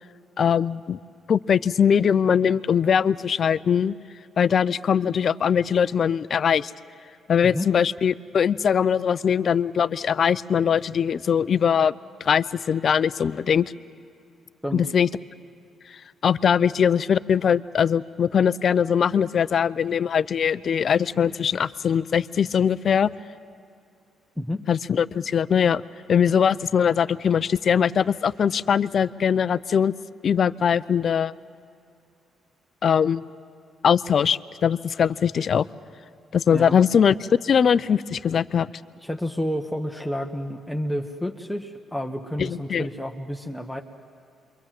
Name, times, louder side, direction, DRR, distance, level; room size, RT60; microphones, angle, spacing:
voice 1, 0.4-1.0 1.3-3.9 4.4-6.7 7.3-11.9 12.2-13.7 14.7-15.1 16.2-23.1 24.7-25.8 26.1-29.9 30.2-31.3 32.8-33.2 33.8-35.7 36.3-37.1 37.4-38.7 42.4-42.9, left 7 dB, 55° left, 15 dB, 0.6 m, -21 dB
voice 2, 39.0-43.8, equal, ahead, 2 dB, 1.2 m, -30 dB
28.0 x 23.5 x 7.6 m, 2.5 s
cardioid pair, 90°, 0 cm